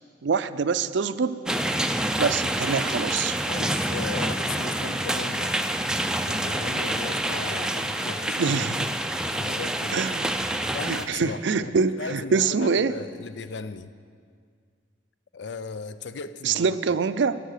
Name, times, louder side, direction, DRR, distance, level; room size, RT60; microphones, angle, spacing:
voice 1, 0.2-1.4 2.2-3.4 8.3-8.9 9.9-12.9 16.4-17.4, right 5 dB, 80° right, 14 dB, 0.5 m, -25 dB
sound 1, 1.5-11.1, right 1 dB, 5° right, 0.4 m, -27 dB
voice 2, 3.5-5.5 6.2-8.6 9.3-10.0 10.7-13.9 15.3-16.7, left 4 dB, 70° left, 13 dB, 0.5 m, -37 dB
13.0 x 11.0 x 6.5 m, 2.1 s
head